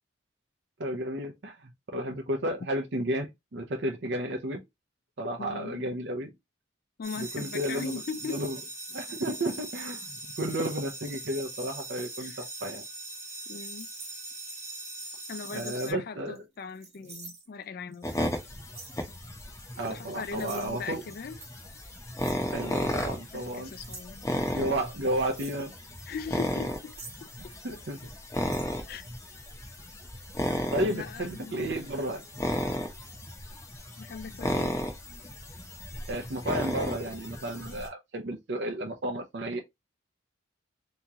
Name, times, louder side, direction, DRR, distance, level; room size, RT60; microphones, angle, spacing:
voice 1, 0.8-4.6 5.2-6.3 7.2-8.0 8.3-8.6 8.9-12.8 15.5-16.4 19.8-21.0 22.5-23.7 24.5-25.7 27.6-28.0 28.5-28.7 30.7-32.2 36.1-39.6, right 1 dB, 60° right, 0.6 m, -32 dB
voice 2, 5.4-5.8 7.0-8.4 12.2-12.4 13.5-13.9 15.3-18.1 19.9-21.4 23.3-24.3 26.1-27.0 28.9-29.0 30.9-31.8 34.0-34.7, left 5 dB, 50° left, 0.3 m, -39 dB
sound 1, 7.0-15.9, right 2 dB, 15° right, 0.9 m, -41 dB
sound 2, 13.5-14.8 15.4-15.8 16.3-17.5 17.9-18.2 18.7-19.1 19.6-19.8 20.3-20.8 21.4-21.5 22.1-22.4 22.8-22.9 23.4-24.1 25.2-25.6 26.4-27.7 28.0-28.1 28.4-28.7, right 4 dB, 35° right, 1.2 m, -47 dB
sound 3, 18.0-37.9, equal, 15° left, 0.7 m, -35 dB
3.5 x 3.0 x 2.8 m
head